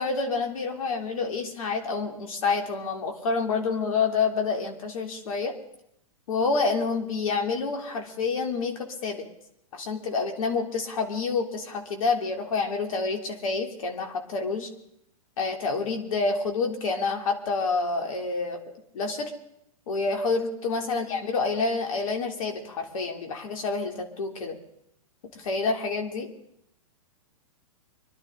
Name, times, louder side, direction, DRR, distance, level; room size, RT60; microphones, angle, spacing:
voice 1, 0.0-5.5 6.3-9.2 9.7-14.7 15.4-18.6 18.9-19.3 19.9-24.6 25.3-26.3, left 4 dB, 65° left, 4 dB, 3.1 m, -28 dB
24.5 x 12.5 x 3.9 m, 0.75 s
hypercardioid pair, 110°, 19 cm